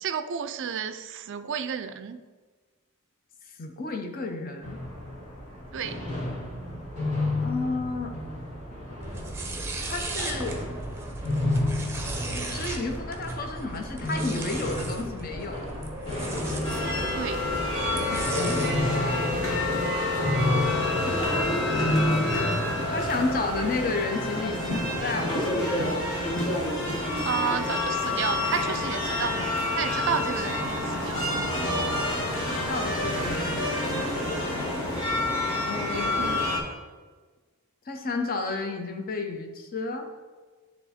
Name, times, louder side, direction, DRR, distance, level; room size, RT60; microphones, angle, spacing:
voice 1, 0.0-2.2 5.7-6.0 17.2-17.4 26.9-29.4 29.8-31.4 36.2-36.5, right 7 dB, 55° right, 12 dB, 0.4 m, -31 dB
voice 2, 3.6-4.8 7.4-8.2 9.8-10.6 12.5-15.7 17.9-19.9 21.0-21.2 22.9-25.9 32.4-34.8 35.6-36.3 37.9-40.1, left 3 dB, 40° left, 4 dB, 0.7 m, -32 dB
sound 1, 4.6-23.9, left 1 dB, 85° left, 1.9 m, -32 dB
sound 2, 9.0-18.8, right 2 dB, 10° right, 0.7 m, -37 dB
sound 3, 16.6-36.6, left 1 dB, 60° left, 1.7 m, -28 dB
9.4 x 3.4 x 4.2 m, 1.4 s
head